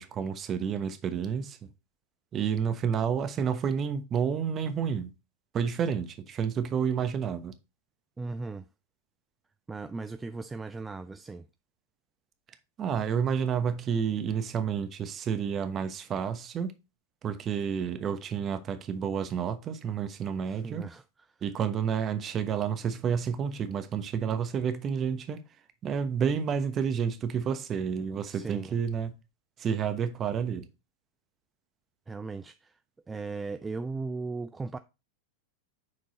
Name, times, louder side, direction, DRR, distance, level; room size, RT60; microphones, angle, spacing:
voice 1, 0.0-1.6 2.3-5.1 5.5-7.5 12.8-16.7 17.2-20.9 21.4-25.4 25.8-29.1 29.6-30.7, right 7 dB, 30° right, 1.0 m, -30 dB
voice 2, 8.2-8.6 9.7-11.5 20.4-21.0 28.1-28.8 32.1-32.8 33.1-34.8, right 3 dB, 15° right, 0.4 m, -37 dB
6.5 x 4.6 x 4.1 m
hypercardioid pair, 100°, 0 cm